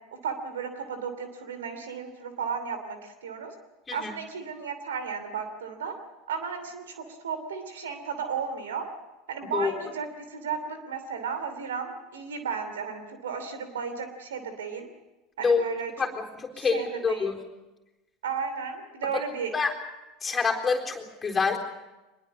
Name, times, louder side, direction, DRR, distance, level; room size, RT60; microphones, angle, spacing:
voice 1, 0.2-3.5 3.9-6.0 6.3-8.9 9.3-14.9 15.4-15.9 16.5-17.3 18.2-19.5, right 6 dB, 70° right, 9 dB, 2.9 m, -34 dB
voice 2, 16.0-17.3 19.1-19.2 19.5-19.7 20.2-21.6, left 5 dB, 20° left, 2 dB, 4.0 m, -26 dB
24.5 x 21.5 x 7.3 m, 1.0 s
figure-of-eight pair, 75°, 0 cm